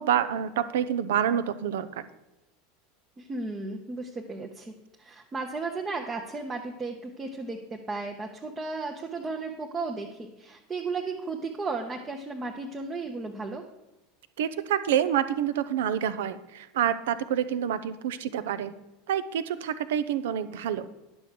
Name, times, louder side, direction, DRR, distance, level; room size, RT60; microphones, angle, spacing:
voice 1, 0.0-2.0 14.4-18.7 19.1-20.9, right 9 dB, 60° right, 14 dB, 0.6 m, -27 dB
voice 2, 3.2-4.7 5.0-13.7, right 3 dB, 20° right, 1 dB, 1.0 m, -34 dB
10.5 x 6.2 x 6.7 m, 0.95 s
figure-of-eight pair, 80°, 0 cm